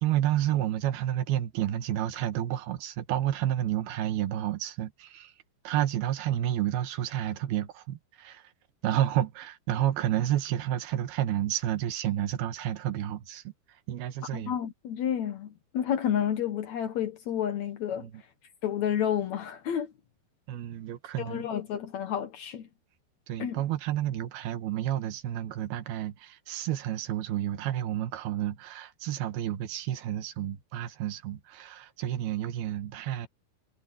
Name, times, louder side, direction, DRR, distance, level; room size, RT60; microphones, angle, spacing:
voice 1, 0.0-5.3 5.6-8.5 8.8-13.4 13.7-14.6 18.0-18.2 20.5-21.5 23.3-33.3, right 12 dB, 70° right, 3.2 m, -30 dB
voice 2, 14.3-18.1 18.6-19.9 21.2-22.7 23.4-23.6, left 9 dB, 70° left, 1.7 m, -30 dB
omnidirectional pair, 4.9 m